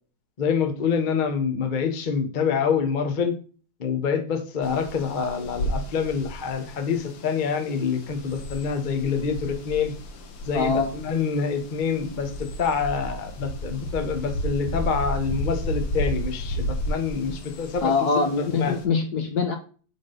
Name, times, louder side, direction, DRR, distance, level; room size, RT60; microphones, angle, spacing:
voice 1, 0.4-3.3 3.8-9.9 10.4-18.7, left 6 dB, 35° left, 6 dB, 0.7 m, -26 dB
sound 1, 4.6-18.8, equal, 90° left, 2.0 m, -33 dB
voice 2, 10.5-10.9 17.8-19.5, left 4 dB, 60° left, 5 dB, 1.1 m, -23 dB
9.1 x 3.9 x 3.8 m, 0.39 s
omnidirectional pair, 2.4 m